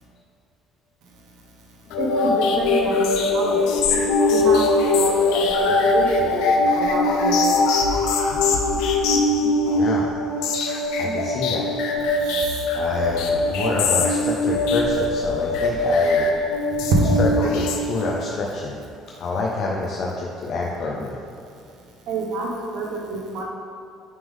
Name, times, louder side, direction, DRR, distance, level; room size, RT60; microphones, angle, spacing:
sound 1, 1.9-18.3, left 2 dB, 85° left, 0.7 m, -21 dB
voice 1, 2.0-3.7 4.3-4.6 4.9-6.4 6.8-7.5 12.2-12.6 16.9-17.2 22.1-22.5 22.7-23.4, right 3 dB, 70° right, -1 dB, 1.0 m, -26 dB
voice 2, 9.7-10.1 11.0-11.7 12.7-16.3 17.2-18.8 19.2-21.1, left 3 dB, 45° left, -3 dB, 0.6 m, -27 dB
9.1 x 3.5 x 3.6 m, 2.4 s
cardioid pair, 160°, 0 cm